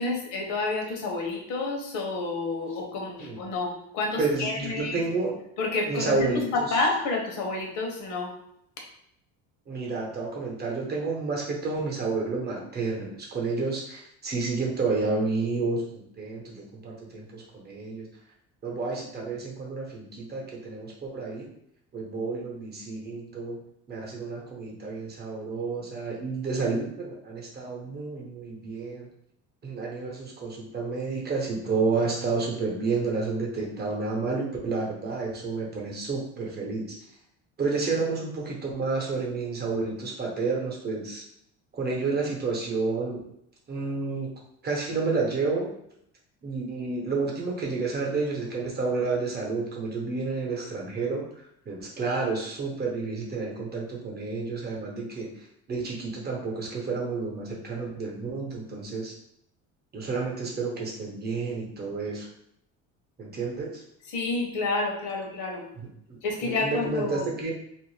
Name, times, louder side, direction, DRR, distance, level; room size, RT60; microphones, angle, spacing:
voice 1, 0.0-4.9 5.6-6.3 6.5-8.3 64.1-65.6 66.2-67.3, left 3 dB, 65° left, 1 dB, 0.9 m, -29 dB
voice 2, 4.2-5.4 5.9-6.9 9.7-18.1 18.6-21.5 21.9-23.6 23.9-29.1 29.6-37.0 37.6-41.2 41.7-43.2 43.7-44.3 44.6-45.7 46.4-51.3 51.7-59.1 59.9-62.3 63.2-63.8 65.7-67.5, right 4 dB, 30° right, -2 dB, 0.9 m, -30 dB
2.5 x 2.0 x 3.2 m, 0.73 s
supercardioid pair, 95°, 31 cm